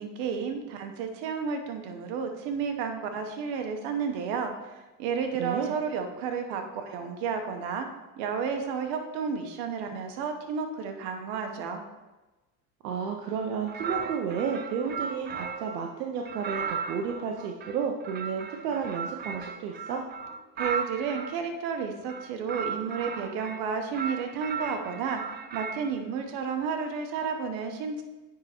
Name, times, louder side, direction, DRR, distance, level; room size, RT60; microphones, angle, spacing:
voice 1, 0.0-7.9 8.2-11.8 20.6-25.2 25.5-28.0, right 6 dB, 65° right, 5 dB, 1.0 m, -32 dB
voice 2, 5.4-5.7 12.8-20.0, right 6 dB, 85° right, 1 dB, 0.7 m, -32 dB
sound 1, 13.7-15.8 16.3-21.4 22.0-23.6 23.9-25.9, right 6 dB, 25° right, 0.4 m, -36 dB
9.7 x 3.8 x 3.0 m, 1.1 s
hypercardioid pair, 70°, 47 cm